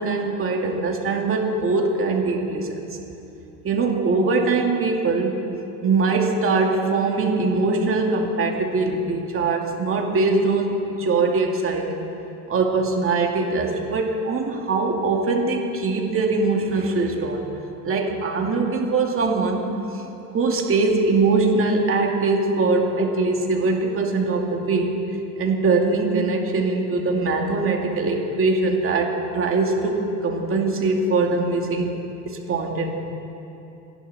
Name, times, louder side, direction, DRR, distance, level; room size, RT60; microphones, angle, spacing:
voice 1, 0.0-3.0 3.6-5.4 5.8-12.0 12.5-17.5 17.8-19.7 19.9-20.0 20.3-25.0 25.4-31.9 32.3-32.9, right 3 dB, 30° right, 1 dB, 2.5 m, -22 dB
27.5 x 11.5 x 4.3 m, 2.8 s
supercardioid pair, 105°, 42 cm